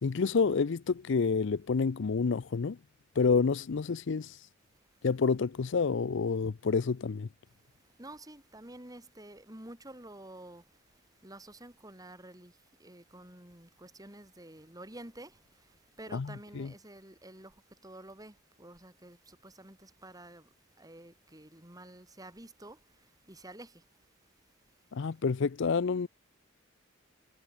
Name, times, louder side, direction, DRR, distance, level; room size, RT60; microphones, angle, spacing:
voice 1, 0.0-2.8 3.2-4.4 5.0-7.3 16.1-16.3 16.6-16.7 24.9-26.1, left 5 dB, 60° left, 0.5 m, -28 dB
voice 2, 7.5-20.5 20.8-23.9, right 1 dB, 15° right, 3.6 m, -50 dB
head